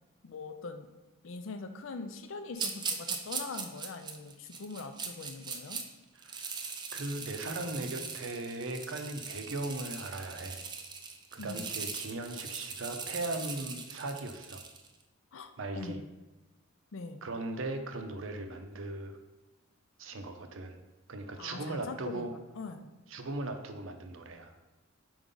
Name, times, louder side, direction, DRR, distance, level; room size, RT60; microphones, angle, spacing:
voice 1, 0.2-0.9 1.2-5.8 11.4-11.7 15.3-15.5 15.8-16.1 16.9-17.2 21.4-22.9, left 3 dB, 65° left, 8 dB, 0.5 m, -42 dB
sound 1, 2.6-5.8 6.2-14.9, right 5 dB, 20° right, 0.4 m, -40 dB
voice 2, 6.2-6.7 6.9-10.6 11.3-14.6 15.6-16.0 17.2-19.2 20.0-20.8 21.1-22.3 23.1-24.5, right 2 dB, 65° right, 6 dB, 0.6 m, -38 dB
5.2 x 4.7 x 3.8 m, 1.1 s
head